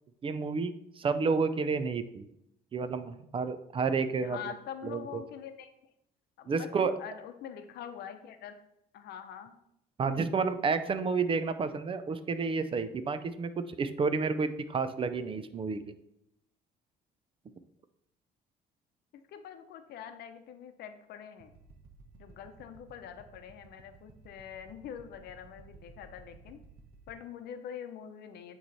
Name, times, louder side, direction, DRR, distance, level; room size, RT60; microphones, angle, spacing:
voice 1, 0.2-2.2 2.7-4.4 4.8-5.2 6.5-6.9 10.0-15.9, right 4 dB, 30° right, 11 dB, 0.5 m, -30 dB
voice 2, 4.2-5.9 6.4-8.6 8.9-9.6 19.1-21.5 22.2-26.6 27.1-28.6, left 8 dB, 70° left, 8 dB, 0.8 m, -44 dB
sound 1, 21.4-27.1, right 3 dB, 65° right, 1.1 m, -56 dB
9.4 x 3.1 x 4.1 m, 0.79 s
cardioid pair, 110°, 17 cm